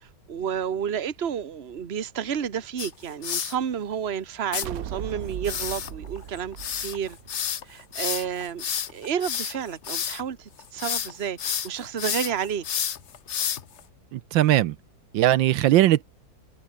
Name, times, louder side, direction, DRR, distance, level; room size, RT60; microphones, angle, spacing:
voice 1, 0.0-7.2 7.6-12.7, right 8 dB, 35° right, 1.3 m, -31 dB
sound 1, 2.8-3.6 4.5-4.7 5.5-10.2 10.6-11.1 11.4-13.8, left 8 dB, 45° left, 1.0 m, -30 dB
sound 2, 4.6-8.1, right 10 dB, 55° right, 1.2 m, -37 dB
voice 2, 14.1-14.8 15.1-16.0, right 13 dB, 80° right, 1.4 m, -19 dB
omnidirectional pair, 2.1 m